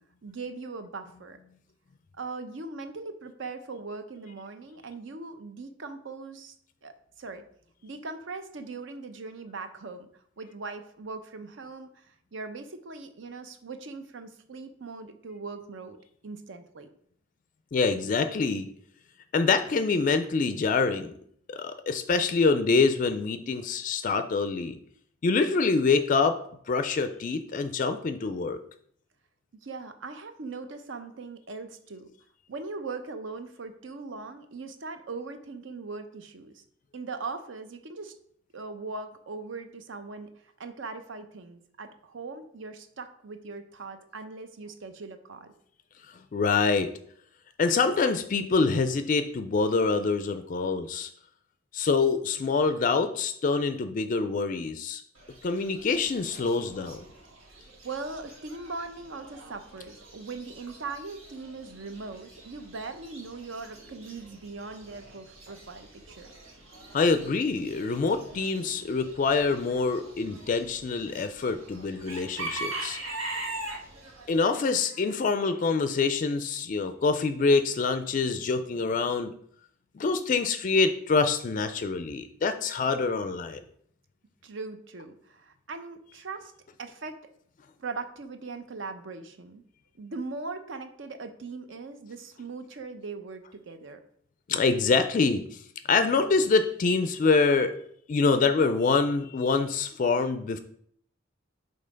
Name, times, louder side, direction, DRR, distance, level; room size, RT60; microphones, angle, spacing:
voice 1, 0.2-1.4 2.2-6.6 6.8-7.4 7.8-10.1 10.4-16.0 16.2-16.9 29.6-32.1 32.5-36.6 36.9-38.1 38.5-40.3 40.6-45.5 57.8-66.3 84.4-86.5 86.8-87.2 87.8-89.6 90.0-94.0, right 3 dB, 65° right, 8 dB, 0.7 m, -40 dB
voice 2, 17.7-18.7 19.3-21.1 21.5-24.8 25.2-26.4 26.7-28.6 46.3-46.9 47.6-51.1 51.7-55.0 55.4-57.0 66.9-73.0 74.3-79.3 79.9-83.6 94.5-97.7 98.1-100.6, left 4 dB, 40° left, 10 dB, 0.3 m, -25 dB
Chicken rooster / Bird, 55.2-74.3, right 2 dB, 80° right, 1.5 m, -43 dB
5.5 x 3.9 x 5.1 m, 0.64 s
head